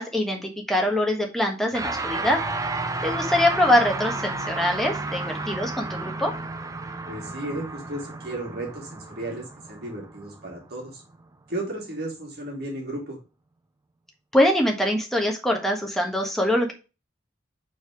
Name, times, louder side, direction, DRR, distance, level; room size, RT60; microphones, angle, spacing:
voice 1, 0.0-2.4 3.0-6.3 14.3-16.7, left 1 dB, ahead, 1 dB, 1.4 m, -23 dB
sound 1, 1.7-11.2, right 3 dB, 20° right, 0.5 m, -32 dB
voice 2, 7.1-11.0 11.5-13.2, right 1 dB, 55° right, -1 dB, 2.7 m, -34 dB
4.7 x 4.5 x 4.7 m, 0.30 s
head